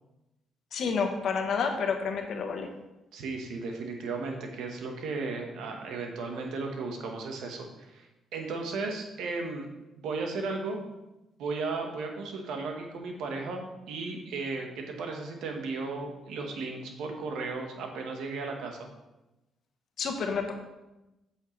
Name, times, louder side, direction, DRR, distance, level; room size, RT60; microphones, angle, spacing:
voice 1, 0.7-2.7 20.0-20.5, left 5 dB, 65° left, 4 dB, 1.1 m, -29 dB
voice 2, 3.1-8.1 8.3-9.7 10.0-10.8 11.4-18.9, right 3 dB, 85° right, 3 dB, 1.3 m, -35 dB
8.0 x 6.4 x 3.2 m, 0.98 s
cardioid pair, 90°, 0 cm